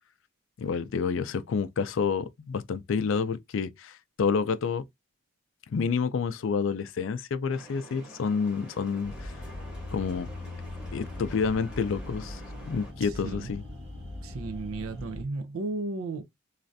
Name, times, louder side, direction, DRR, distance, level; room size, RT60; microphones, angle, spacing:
voice 1, 0.6-4.8 5.7-9.3 9.9-10.3 10.9-12.4 12.7-13.6, left 5 dB, 65° left, 0.4 m, -29 dB
sound 1, 7.5-12.9, right 1 dB, 5° right, 1.0 m, -49 dB
sound 2, 9.0-15.2, left 2 dB, 65° right, 1.6 m, -40 dB
voice 2, 13.0-13.6 14.2-16.2, right 3 dB, 85° right, 0.5 m, -34 dB
3.2 x 2.4 x 2.5 m
head